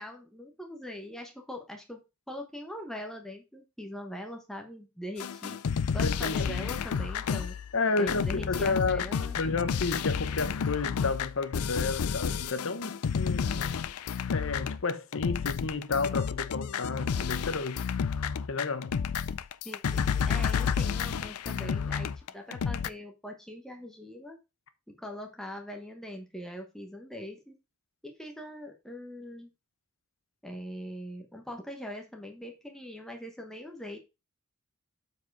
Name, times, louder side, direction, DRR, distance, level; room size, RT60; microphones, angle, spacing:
voice 1, 0.0-5.6 5.9-7.6 8.0-9.4 19.6-24.4 24.9-27.6 28.0-29.5 30.4-34.0, left 1 dB, ahead, 1.0 m, -42 dB
sound 1, 5.2-22.9, left 6 dB, 80° left, 0.4 m, -31 dB
voice 2, 6.0-6.6 7.7-9.1 9.3-13.8 14.3-17.8 18.5-19.0, left 4 dB, 60° left, 0.9 m, -31 dB
7.4 x 4.7 x 4.6 m
head